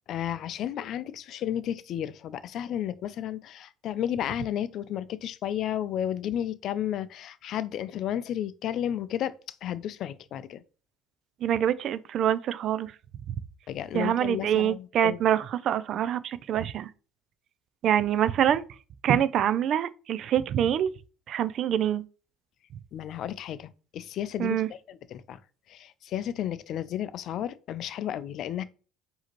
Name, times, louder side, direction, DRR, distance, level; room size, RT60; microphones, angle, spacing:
voice 1, 0.1-10.6 13.7-15.2 19.1-19.2 22.9-25.4 25.7-28.6, left 10 dB, 60° left, 0.4 m, -33 dB
voice 2, 11.4-12.9 13.3-13.4 13.9-16.9 17.8-18.6 19.0-20.9 21.3-22.0 24.4-24.7, right 10 dB, 55° right, 0.4 m, -25 dB
4.8 x 2.8 x 3.0 m
supercardioid pair, 80°, 0 cm